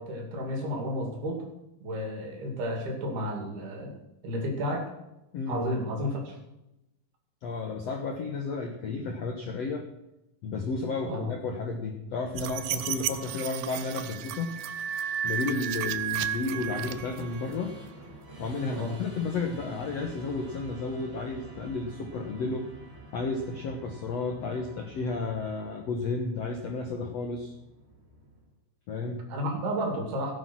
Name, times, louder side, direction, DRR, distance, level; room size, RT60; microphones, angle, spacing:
voice 1, 0.0-1.4 1.8-4.0 4.2-4.9 5.5-6.4 11.0-11.3 18.7-19.0 29.3-30.3, equal, 70° right, 3 dB, 4.5 m, -32 dB
voice 2, 7.4-9.8 10.4-14.5 15.2-17.8 18.4-22.7 23.1-27.5 28.9-29.2, left 3 dB, 65° left, 3 dB, 1.6 m, -32 dB
sound 1, 12.4-17.5, right 10 dB, 85° right, 1.8 m, -33 dB
Musical instrument, 13.3-28.6, right 1 dB, 25° right, 1.5 m, -49 dB
17.0 x 9.1 x 6.2 m, 0.92 s
omnidirectional pair, 4.7 m